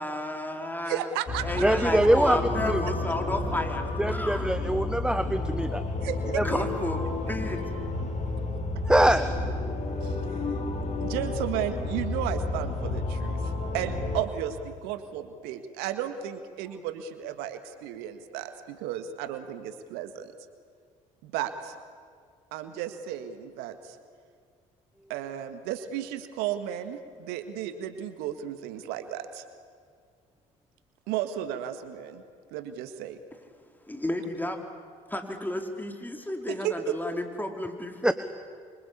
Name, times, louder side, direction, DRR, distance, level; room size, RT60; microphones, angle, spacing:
voice 1, 0.0-1.1 1.4-4.5 6.4-7.6 33.9-34.6 35.1-38.1, left 1 dB, 10° left, 4 dB, 4.2 m, -32 dB
voice 2, 0.9-1.7 6.0-6.6 10.0-10.5 11.0-20.3 21.2-21.8 22.5-24.0 25.1-29.4 31.1-32.2 32.5-33.2 36.5-37.0, right 10 dB, 70° right, 10 dB, 1.8 m, -34 dB
sound 1, 1.3-14.2, left 2 dB, 45° left, 4.9 m, -31 dB
voice 3, 1.6-2.4 2.6-2.8 4.0-5.8 6.4-6.5 8.9-9.3 38.0-38.1, right 1 dB, 5° right, 11 dB, 1.2 m, -23 dB
27.5 x 25.5 x 8.6 m, 2.1 s
hypercardioid pair, 55°, 17 cm